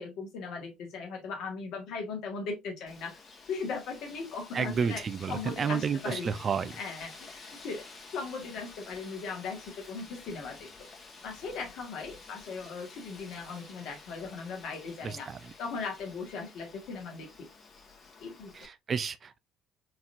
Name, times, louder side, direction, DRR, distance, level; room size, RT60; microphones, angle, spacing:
voice 1, 0.0-3.2 3.5-5.0 5.3-6.3 6.8-7.8 8.1-10.9 11.2-15.3 15.6-17.5 18.2-18.5, left 4 dB, 60° left, 1.8 m, -38 dB
Wind, 2.9-18.7, left 4 dB, 35° left, 1.8 m, -51 dB
voice 2, 4.5-6.7 15.0-15.5 18.5-19.4, right 6 dB, 40° right, 0.5 m, -31 dB
4.6 x 3.5 x 2.7 m
figure-of-eight pair, 55°, 0 cm